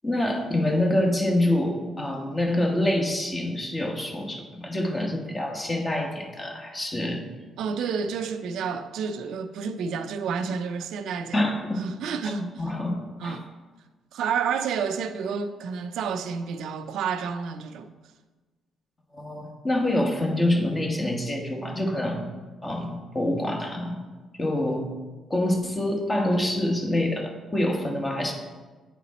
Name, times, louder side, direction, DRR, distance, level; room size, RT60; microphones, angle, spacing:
voice 1, 0.0-7.2 11.3-11.8 12.6-13.4 19.1-22.3 22.6-24.0 24.4-24.9 25.3-28.3, left 1 dB, 25° left, 1.2 m, -26 dB
voice 2, 7.6-12.6 13.2-13.4 14.1-17.9, right 6 dB, 80° right, 0.4 m, -30 dB
8.4 x 4.2 x 4.1 m
cardioid pair, 90°, 0 cm